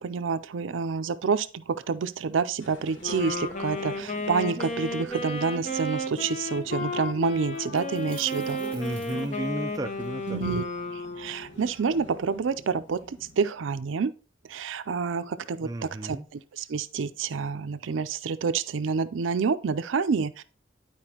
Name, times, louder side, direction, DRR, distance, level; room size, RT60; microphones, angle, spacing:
voice 1, 0.0-8.6 10.3-10.6 10.9-14.1 14.5-20.4, right 5 dB, 90° right, 0.4 m, -28 dB
sound 1, 2.6-13.4, equal, 85° left, 1.6 m, -48 dB
Wind instrument woodwind instrument, 3.0-11.6, left 2 dB, 40° left, 0.9 m, -33 dB
sound 2, 7.5-10.1, right 1 dB, 5° left, 1.1 m, -49 dB
voice 2, 8.7-10.4 15.6-16.3, right 2 dB, 20° right, 0.4 m, -33 dB
11.0 x 4.7 x 2.9 m
head